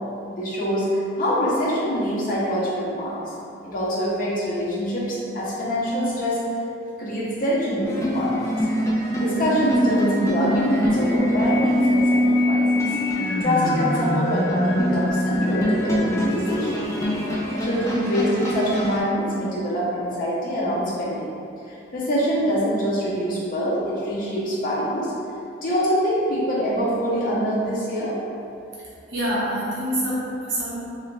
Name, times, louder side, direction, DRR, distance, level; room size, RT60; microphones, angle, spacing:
voice 1, 0.3-3.2 3.6-6.4 7.0-8.6 9.2-12.8 13.4-16.8 17.6-21.3 21.7-25.1 25.6-28.1, equal, 45° left, -8 dB, 0.7 m, -25 dB
sound 1, 7.8-19.0, equal, 15° left, 0.3 m, -23 dB
voice 2, 29.1-30.8, equal, 75° right, -8 dB, 0.7 m, -26 dB
3.3 x 2.4 x 3.0 m, 2.6 s
head